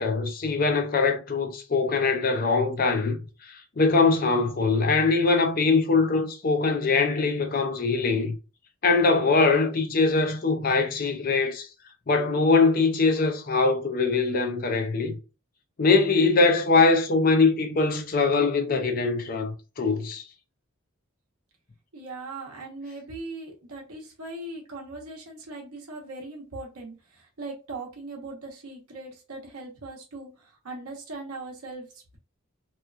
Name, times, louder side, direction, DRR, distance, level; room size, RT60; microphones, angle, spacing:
voice 1, 0.0-8.3 8.8-11.7 12.1-15.2 15.8-20.2, left 4 dB, 40° left, 0.4 m, -22 dB
voice 2, 21.9-32.2, right 2 dB, 80° right, 0.8 m, -40 dB
2.9 x 2.2 x 2.3 m
head